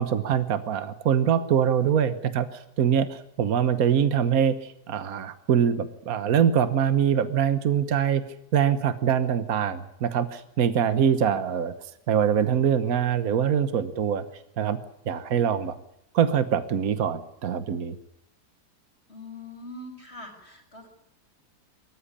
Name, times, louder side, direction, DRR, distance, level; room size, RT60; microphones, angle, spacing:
voice 1, 0.0-8.2 8.5-11.7 12.1-14.2 14.6-14.8 15.1-15.7 16.1-17.9, right 8 dB, 65° right, 11 dB, 1.5 m, -24 dB
voice 2, 19.1-20.9, left 2 dB, 40° left, 1 dB, 6.1 m, -42 dB
24.0 x 14.5 x 10.0 m, 0.79 s
omnidirectional pair, 1.7 m